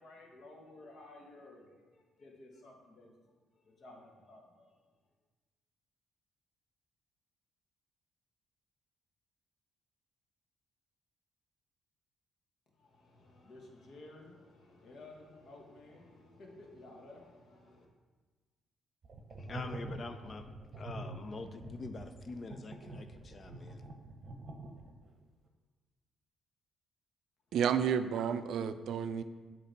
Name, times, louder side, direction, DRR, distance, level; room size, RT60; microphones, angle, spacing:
voice 1, 0.0-1.7 1.9-3.1 3.5-4.7 12.8-17.9, left 2 dB, 60° left, 0 dB, 1.2 m, -54 dB
sound 1, 19.0-25.1, right 2 dB, 45° right, 0.8 m, -46 dB
voice 2, 19.4-20.5 20.8-23.8, left 3 dB, 40° left, 9 dB, 0.4 m, -45 dB
voice 3, 27.5-29.2, right 8 dB, 70° right, 12 dB, 0.3 m, -31 dB
7.7 x 2.9 x 4.5 m, 1.4 s
cardioid pair, 90°, 0 cm